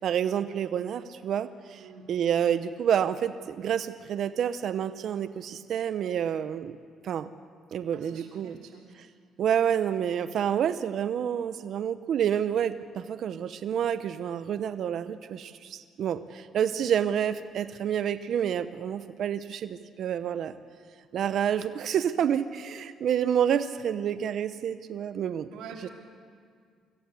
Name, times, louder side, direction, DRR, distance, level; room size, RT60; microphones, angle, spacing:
voice 1, 0.0-1.8 2.1-6.8 7.0-7.3 7.7-8.6 9.4-20.5 21.1-25.5 25.8-25.9, right 9 dB, 65° right, 12 dB, 0.8 m, -28 dB
voice 2, 1.8-2.1 7.9-8.9 25.5-25.9, right 6 dB, 85° right, 0 dB, 3.6 m, -46 dB
25.0 x 14.5 x 8.3 m, 2.1 s
cardioid pair, 90°, 0 cm